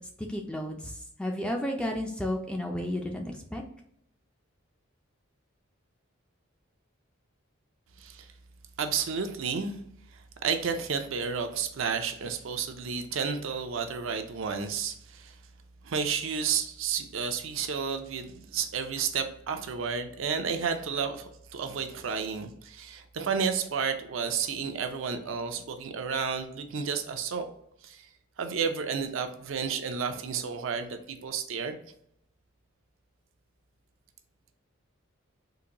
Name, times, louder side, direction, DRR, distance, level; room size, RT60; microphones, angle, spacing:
voice 1, 0.3-0.9 1.2-3.6, left 1 dB, 5° left, 2 dB, 0.3 m, -32 dB
voice 2, 8.8-9.8 10.1-15.4 15.8-27.5 27.8-28.1 28.4-31.8, right 6 dB, 70° right, 6 dB, 0.5 m, -31 dB
3.8 x 2.6 x 2.9 m, 0.71 s
head